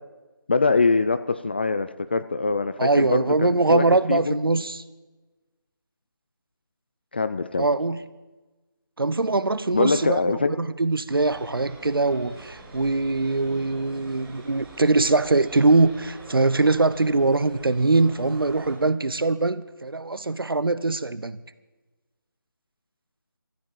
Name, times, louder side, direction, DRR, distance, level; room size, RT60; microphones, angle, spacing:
voice 1, 0.5-4.3 7.1-7.7 9.7-10.5, left 3 dB, 30° left, 12 dB, 0.4 m, -23 dB
voice 2, 2.8-4.8 7.6-8.0 9.0-21.4, right 3 dB, 80° right, 15 dB, 0.9 m, -22 dB
sound 1, 11.1-18.8, right 3 dB, 5° right, 2.2 m, -45 dB
13.5 x 12.0 x 7.6 m, 1.2 s
figure-of-eight pair, 165°, 12 cm